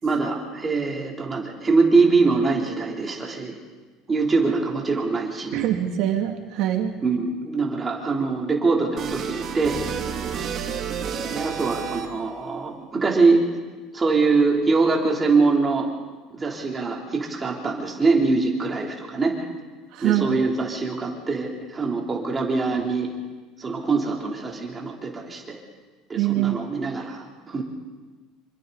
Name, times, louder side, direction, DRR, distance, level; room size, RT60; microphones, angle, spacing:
voice 1, 0.0-3.5 4.1-5.6 7.0-9.8 11.3-13.4 13.9-15.9 16.3-19.3 20.0-23.1 23.6-25.6 26.1-27.6, right 4 dB, 15° right, -1 dB, 3.4 m, -23 dB
voice 2, 5.5-6.9 19.9-20.4 26.2-26.6, right 12 dB, 55° right, 3 dB, 2.5 m, -23 dB
sound 1, 9.0-12.4, right 7 dB, 35° right, 2.6 m, -30 dB
27.0 x 25.5 x 4.1 m, 1.3 s
cardioid pair, 165°, 0 cm